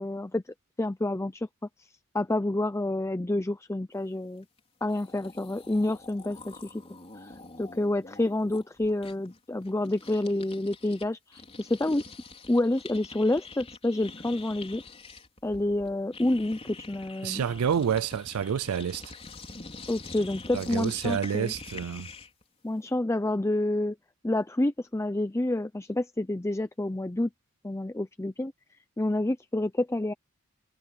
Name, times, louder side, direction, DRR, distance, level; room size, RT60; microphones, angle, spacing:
voice 1, 0.0-1.5 1.8-1.9 2.1-4.5 4.8-6.8 7.2-12.0 12.5-14.8 15.4-17.4 19.9-21.5 22.6-24.0 24.2-27.3 27.6-28.5 29.0-30.1, left 1 dB, 15° left, 0.5 m, -28 dB
sound 1, 4.6-4.7 4.9-11.1 11.3-22.4, left 3 dB, 30° left, 4.4 m, -45 dB
voice 2, 17.2-19.1 20.5-22.1, right 8 dB, 85° right, 0.4 m, -29 dB
head